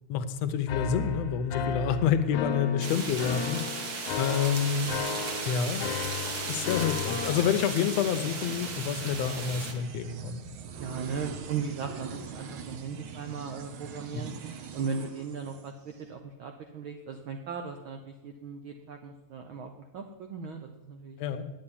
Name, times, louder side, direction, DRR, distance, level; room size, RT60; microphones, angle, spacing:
voice 1, 0.1-3.6 4.2-4.9 5.5-5.8 6.5-10.4 14.2-14.3 21.2-21.5, left 8 dB, 70° left, 9 dB, 1.9 m, -28 dB
sound 1, 0.7-7.5, left 5 dB, 85° left, 2.5 m, -34 dB
sound 2, 2.8-9.7, right 4 dB, 45° right, 1.3 m, -36 dB
sound 3, 6.4-16.1, right 6 dB, 60° right, 1.4 m, -43 dB
voice 2, 10.8-14.3 14.7-21.2, right 5 dB, 80° right, 5 dB, 1.1 m, -37 dB
9.6 x 8.7 x 9.7 m, 1.1 s
omnidirectional pair, 3.4 m